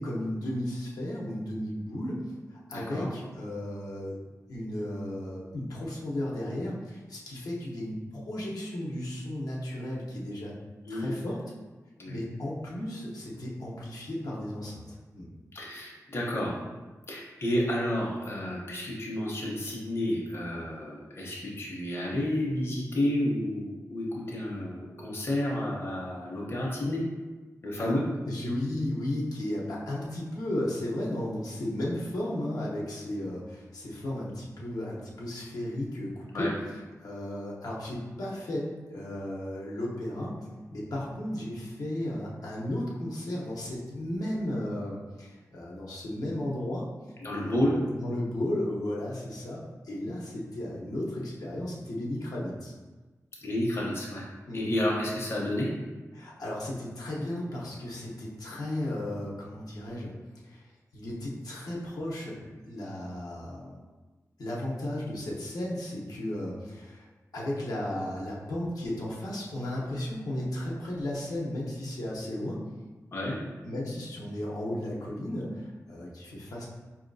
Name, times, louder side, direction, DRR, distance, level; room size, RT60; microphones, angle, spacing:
voice 1, 0.0-4.1 4.5-10.5 10.9-11.4 12.1-15.3 27.8-28.0 28.2-36.5 37.0-40.4 40.7-46.9 47.4-47.6 47.9-52.7 54.5-54.7 56.1-60.1 60.4-63.8 64.4-67.1 67.3-72.6 73.6-76.7, left 1 dB, 85° left, -4 dB, 0.8 m, -34 dB
voice 2, 2.7-3.1 10.9-11.1 12.0-12.2 15.5-16.6 17.1-27.0 27.6-28.0 36.3-36.5 47.2-47.8 53.4-54.3 54.5-55.7 73.1-73.4, left 1 dB, 40° left, -4 dB, 0.7 m, -30 dB
4.7 x 2.8 x 2.6 m, 1.3 s
wide cardioid pair, 110°, 6 cm